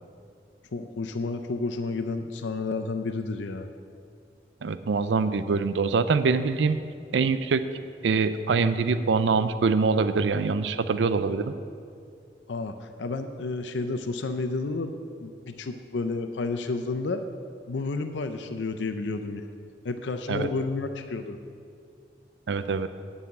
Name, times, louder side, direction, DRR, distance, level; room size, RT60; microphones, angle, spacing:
voice 1, 0.7-3.7 12.5-14.9 15.2-17.2 17.7-19.5 19.8-21.4, left 3 dB, 90° left, 7 dB, 0.5 m, -31 dB
voice 2, 4.6-6.8 7.1-7.6 8.0-11.5 20.3-20.5 22.5-22.9, right 4 dB, 85° right, 12 dB, 0.4 m, -24 dB
9.3 x 5.6 x 8.3 m, 2.4 s
head